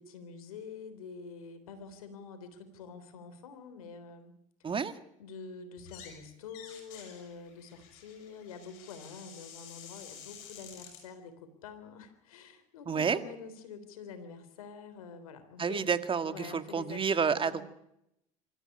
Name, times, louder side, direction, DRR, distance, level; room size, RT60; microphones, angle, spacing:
voice 1, 0.0-4.3 5.2-15.9 16.2-17.6, left 5 dB, 90° left, 10 dB, 3.5 m, -47 dB
voice 2, 4.6-4.9 12.9-13.2 15.6-17.6, right 6 dB, 30° right, 10 dB, 2.0 m, -29 dB
sound 1, 5.8-6.2 6.5-11.0, left 8 dB, 75° left, 7.5 m, -51 dB
25.0 x 14.5 x 10.0 m, 0.81 s
hypercardioid pair, 80°, 18 cm